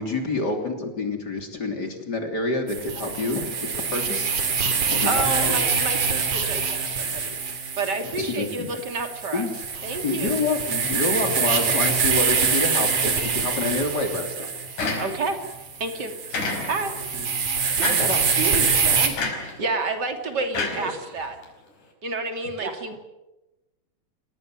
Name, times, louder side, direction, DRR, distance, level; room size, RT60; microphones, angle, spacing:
voice 1, 0.0-4.3 4.9-5.5 8.2-8.7 9.3-9.5 10.0-14.5 17.1-17.3 18.0-18.2, left 3 dB, 30° left, 4 dB, 3.4 m, -27 dB
sound 1, 2.7-19.1, right 5 dB, 55° right, 4.8 m, -25 dB
voice 2, 5.0-7.4 7.7-9.4 9.8-10.3 15.0-15.4 15.8-16.9 19.6-21.4 22.0-23.0, right 3 dB, 30° right, 5 dB, 3.0 m, -29 dB
sound 2, 14.8-15.4 16.3-17.0 17.8-18.2 19.2-19.6 20.5-21.4, left 3 dB, 60° left, 6.6 m, -29 dB
voice 3, 17.8-19.2 20.7-21.1 22.6-22.8, right 5 dB, 75° right, 4 dB, 4.9 m, -32 dB
28.5 x 20.0 x 7.8 m, 1.0 s
omnidirectional pair, 4.2 m